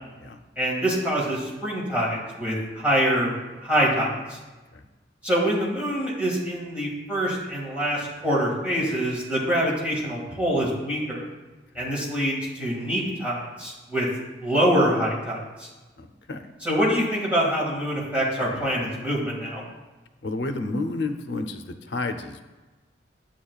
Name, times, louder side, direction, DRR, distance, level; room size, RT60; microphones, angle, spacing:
voice 1, 0.6-3.3 3.6-4.4 5.2-11.3 11.8-14.1 14.4-15.7 16.6-19.6, equal, 10° right, -5 dB, 2.0 m, -25 dB
voice 2, 16.0-16.5 20.2-22.4, left 2 dB, 85° left, 7 dB, 0.6 m, -31 dB
10.5 x 7.3 x 2.4 m, 1.2 s
head